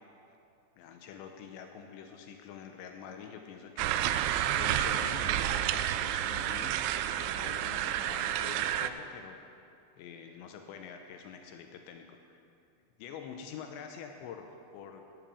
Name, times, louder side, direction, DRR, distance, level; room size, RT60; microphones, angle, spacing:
voice 1, 0.8-6.8 7.0-9.4 10.0-12.4 13.0-15.0, left 7 dB, 80° left, 5 dB, 3.0 m, -46 dB
sound 1, 3.8-8.9, right 11 dB, 85° right, 2.8 m, -30 dB
13.0 x 12.0 x 6.9 m, 2.6 s
omnidirectional pair, 5.3 m